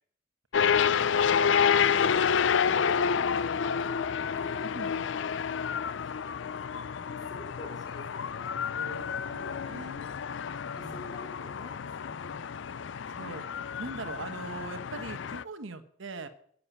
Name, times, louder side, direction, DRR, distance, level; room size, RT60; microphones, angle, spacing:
sound 1, 0.5-15.4, left 7 dB, 65° left, 0.4 m, -29 dB
voice 1, 0.7-3.9 4.2-8.6 9.3-9.5 10.5-12.4, left 1 dB, 20° left, 0 dB, 4.8 m, -48 dB
voice 2, 4.7-5.1 8.7-10.0 10.7-11.0 13.2-13.4 13.8-16.3, right 3 dB, 75° right, 9 dB, 1.1 m, -41 dB
11.0 x 7.6 x 9.4 m, 0.62 s
head